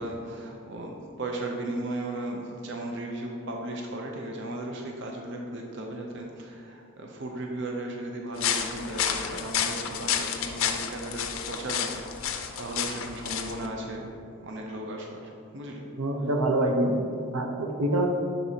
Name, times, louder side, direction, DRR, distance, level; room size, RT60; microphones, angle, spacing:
voice 1, 0.0-14.1 14.4-15.9, right 1 dB, 55° right, 1 dB, 0.5 m, -36 dB
sound 1, 8.4-13.7, left 8 dB, 65° left, 0.4 m, -30 dB
voice 2, 16.0-18.1, right 1 dB, 85° right, 2 dB, 0.7 m, -26 dB
11.0 x 4.0 x 2.8 m, 2.5 s
head